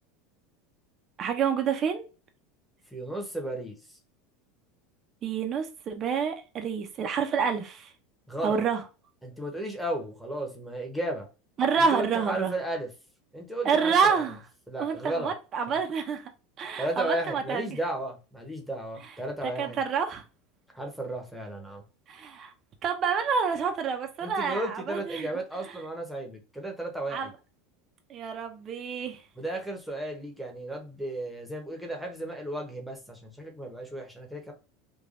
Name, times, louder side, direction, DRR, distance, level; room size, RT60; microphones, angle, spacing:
voice 1, 1.2-2.1 5.2-7.9 8.4-8.8 11.6-12.5 13.6-14.4 14.8-16.2 16.6-17.8 19.0-19.1 19.6-20.2 22.1-22.5 22.8-25.3 25.6-25.8 27.1-27.3 28.1-29.2, right 6 dB, 35° right, 0.5 m, -28 dB
voice 2, 2.9-3.8 8.3-8.6 9.2-11.3 11.9-12.9 13.3-14.3 14.7-15.3 15.7-15.8 16.8-19.8 20.7-21.8 24.2-27.3 29.4-34.5, right 1 dB, ahead, 0.8 m, -34 dB
3.2 x 2.2 x 2.5 m
supercardioid pair, 120°, 0 cm